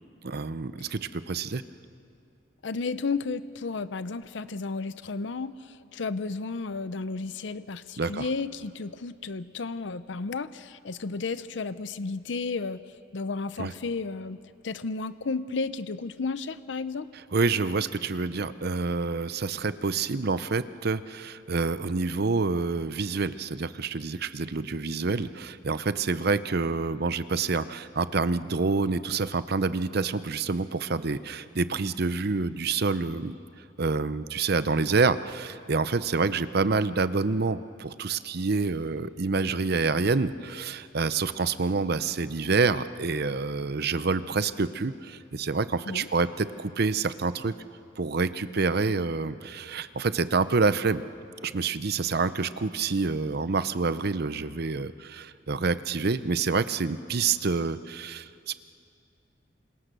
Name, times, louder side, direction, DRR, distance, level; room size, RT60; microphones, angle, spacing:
voice 1, 0.2-1.6 8.0-8.3 13.6-13.7 17.3-33.4 33.8-47.5 48.0-51.0 51.4-58.5, right 4 dB, 60° right, 14 dB, 0.7 m, -27 dB
voice 2, 2.6-12.8 13.1-14.4 14.6-17.1 45.9-46.1, left 4 dB, 70° left, 14 dB, 0.6 m, -33 dB
29.0 x 26.0 x 6.8 m, 2.5 s
head